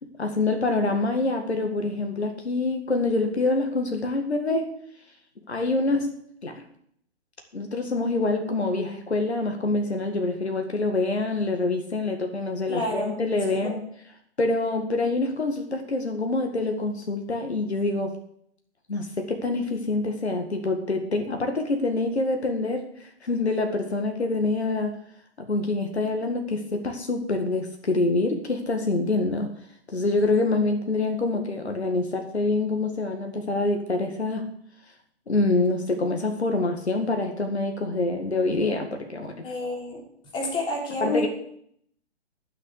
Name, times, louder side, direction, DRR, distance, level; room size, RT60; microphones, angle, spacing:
voice 1, 0.0-4.7 5.5-6.1 6.4-6.6 7.5-13.8 14.4-18.2 18.9-25.0 25.4-29.5 29.9-34.5 35.3-39.5 41.0-41.3, left 2 dB, 70° left, 5 dB, 1.9 m, -26 dB
voice 2, 12.7-13.2 39.4-40.0 40.3-41.3, left 1 dB, 15° left, -1 dB, 3.2 m, -28 dB
11.5 x 6.5 x 8.3 m, 0.66 s
figure-of-eight pair, 130°, 34 cm